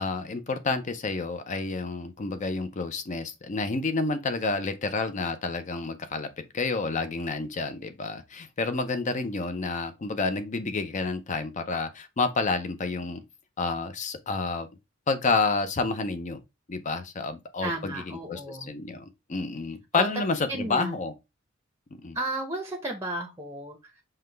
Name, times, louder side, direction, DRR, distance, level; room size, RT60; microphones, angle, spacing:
voice 1, 0.0-13.2 13.6-14.7 15.1-16.4 16.7-21.1 21.9-22.2, left 3 dB, 40° left, 0.5 m, -29 dB
voice 2, 17.6-18.7 19.9-20.1 20.5-21.0 22.1-23.9, right 2 dB, 15° right, 0.7 m, -33 dB
5.7 x 2.2 x 3.2 m
head